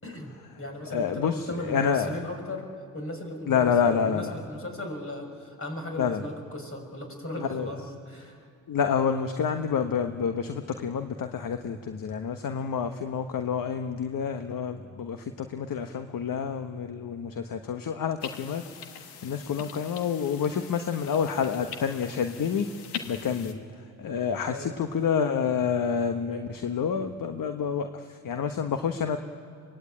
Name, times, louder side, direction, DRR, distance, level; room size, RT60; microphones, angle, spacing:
voice 1, 0.0-2.7 2.9-8.5 24.4-24.8, left 1 dB, 35° left, 3 dB, 6.0 m, -37 dB
voice 2, 0.9-1.3 1.6-2.2 3.5-4.3 6.0-6.2 7.4-7.7 8.7-18.6 19.2-22.7 23.0-23.6 24.0-29.2, left 7 dB, 55° left, 7 dB, 1.3 m, -28 dB
sound 1, 18.2-23.5, left 8 dB, 85° left, 1.5 m, -42 dB
24.0 x 19.5 x 8.8 m, 2.4 s
supercardioid pair, 55°, 40 cm